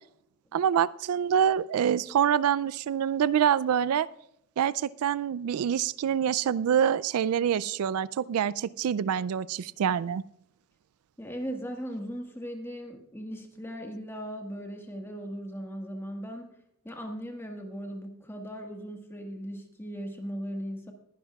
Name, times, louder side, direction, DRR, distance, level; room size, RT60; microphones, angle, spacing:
voice 1, 0.5-4.1 4.6-10.2, right 8 dB, 75° right, 19 dB, 0.3 m, -26 dB
voice 2, 11.2-16.5 16.8-20.9, equal, 10° left, 3 dB, 1.5 m, -38 dB
20.5 x 11.0 x 2.3 m, 0.75 s
head